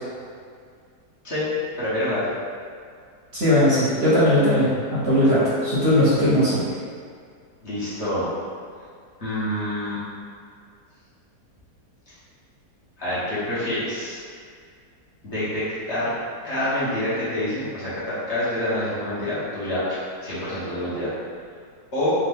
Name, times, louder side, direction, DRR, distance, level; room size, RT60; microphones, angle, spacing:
voice 1, 1.7-2.2 7.6-8.3 9.2-10.0 13.0-14.2 15.2-15.6 15.9-16.1 16.4-21.1 21.9-22.1, left 1 dB, 45° left, -11 dB, 1.4 m, -27 dB
voice 2, 3.3-6.7, left 1 dB, 50° right, -10 dB, 1.0 m, -19 dB
3.6 x 3.2 x 3.5 m, 2.1 s
omnidirectional pair, 1.7 m